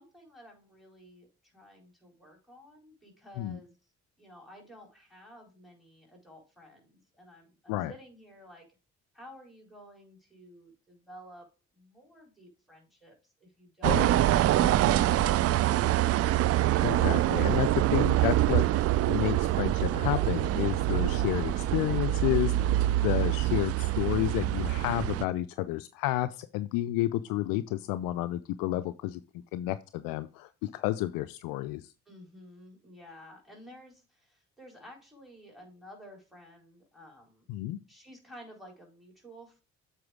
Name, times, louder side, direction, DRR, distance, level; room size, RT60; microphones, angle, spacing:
voice 1, 0.0-3.8 4.2-8.7 9.1-11.5 11.7-14.2 14.6-16.1 32.1-37.5 37.9-39.6, equal, ahead, 0 dB, 4.1 m, -52 dB
sound 1, 13.8-25.3, right 14 dB, 40° right, 0.4 m, -25 dB
voice 2, 16.8-18.6 19.1-29.2 29.5-31.8 37.5-37.8, left 15 dB, 60° left, 13 dB, 0.5 m, -31 dB
7.7 x 4.6 x 4.9 m, 0.33 s
figure-of-eight pair, 45°, 39 cm